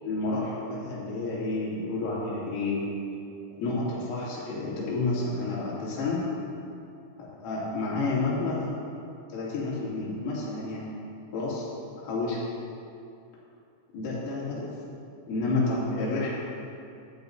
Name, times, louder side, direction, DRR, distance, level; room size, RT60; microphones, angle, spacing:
voice 1, 0.0-2.9 3.6-6.2 7.2-8.7 9.3-10.9 11.3-11.7 12.0-12.4 13.9-14.7 15.3-16.3, left 3 dB, 90° left, -7 dB, 5.3 m, -30 dB
15.5 x 11.5 x 2.7 m, 2.5 s
omnidirectional pair, 5.7 m